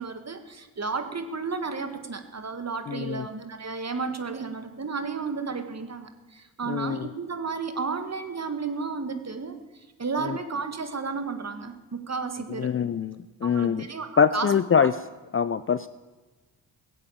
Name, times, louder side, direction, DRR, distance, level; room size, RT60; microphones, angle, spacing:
voice 1, 0.0-12.7 13.4-14.5 14.8-14.9, right 4 dB, 35° right, 8 dB, 1.9 m, -33 dB
voice 2, 2.9-3.2 6.7-7.1 10.2-10.4 12.6-13.8 14.2-14.9 15.3-15.9, left 7 dB, 30° left, 15 dB, 0.5 m, -24 dB
16.5 x 7.8 x 8.6 m, 1.2 s
supercardioid pair, 50°, 45 cm